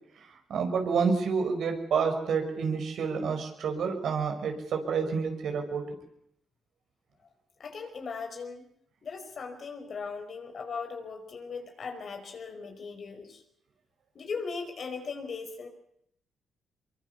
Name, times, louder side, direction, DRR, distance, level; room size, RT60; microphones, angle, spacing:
voice 1, 0.5-5.8, right 5 dB, 70° right, 4 dB, 5.7 m, -28 dB
voice 2, 7.6-8.6 9.0-13.4 14.2-15.7, left 5 dB, 55° left, 5 dB, 5.3 m, -38 dB
24.0 x 23.0 x 7.0 m, 0.74 s
cardioid pair, 75°, 0 cm